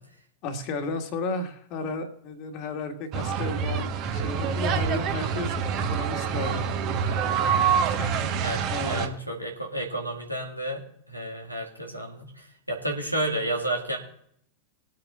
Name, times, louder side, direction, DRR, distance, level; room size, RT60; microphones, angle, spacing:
voice 1, 0.4-5.5 5.9-6.7 7.3-7.4 8.0-9.2, left 2 dB, 40° left, 5 dB, 1.8 m, -33 dB
sound 1, 3.1-9.1, right 6 dB, 40° right, 1.3 m, -26 dB
voice 2, 7.0-7.5 7.9-8.0 8.4-14.0, right 1 dB, 90° right, 0 dB, 2.0 m, -32 dB
21.5 x 8.7 x 2.5 m, 0.70 s
figure-of-eight pair, 90°, 0 cm